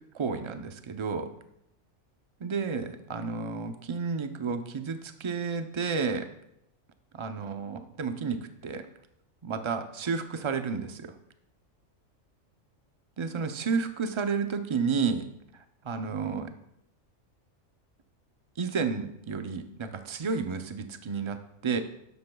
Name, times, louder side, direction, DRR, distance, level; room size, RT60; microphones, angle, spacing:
voice 1, 0.1-1.3 2.4-6.3 7.2-8.9 9.4-11.1 13.2-15.3 15.8-16.5 18.6-21.8, right 5 dB, 35° right, 8 dB, 0.5 m, -31 dB
12.0 x 11.0 x 2.3 m, 0.79 s
omnidirectional pair, 1.4 m